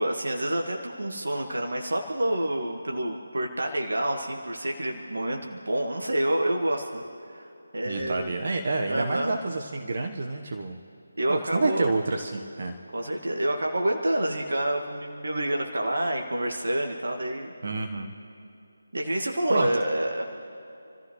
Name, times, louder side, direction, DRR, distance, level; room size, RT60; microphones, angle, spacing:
voice 1, 0.0-7.0 7.3-7.5 7.7-8.4 8.9-9.4 11.2-11.9 12.9-17.5 18.9-20.2, right 1 dB, 65° right, 1 dB, 1.7 m, -28 dB
voice 2, 7.8-10.8 11.3-12.8 17.6-18.1 19.5-19.8, right 3 dB, 50° right, 4 dB, 1.2 m, -28 dB
28.5 x 14.5 x 3.2 m, 2.7 s
figure-of-eight pair, 155°, 0 cm